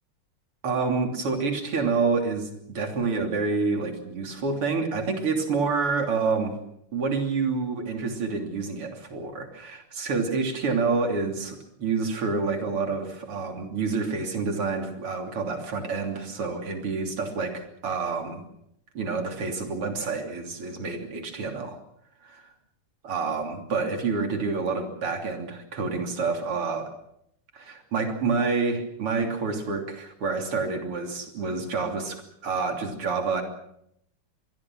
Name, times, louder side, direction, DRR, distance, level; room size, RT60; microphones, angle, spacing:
voice 1, 0.6-6.6 6.9-18.4 18.9-21.8 22.2-22.5 23.0-26.9 27.5-33.4, right 4 dB, 85° right, 4 dB, 4.0 m, -28 dB
26.0 x 21.5 x 6.2 m, 0.75 s
omnidirectional pair, 2.4 m